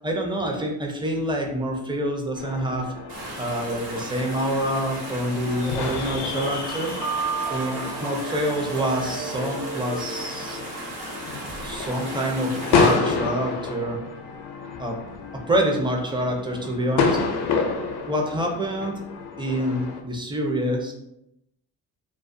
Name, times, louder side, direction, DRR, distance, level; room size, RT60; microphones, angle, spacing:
voice 1, 0.0-2.9 3.4-6.9 7.5-10.6 11.6-14.0 14.8-15.0 15.3-17.2 18.1-18.9 19.4-20.9, equal, 10° right, 0 dB, 0.6 m, -26 dB
sound 1, 2.4-20.0, left 5 dB, 70° left, 0.5 m, -30 dB
sound 2, 3.1-13.0, right 1 dB, 70° right, 1.1 m, -36 dB
sound 3, 6.6-11.9, right 4 dB, 45° right, 1.1 m, -34 dB
2.3 x 2.2 x 2.6 m, 0.83 s
supercardioid pair, 60°, 41 cm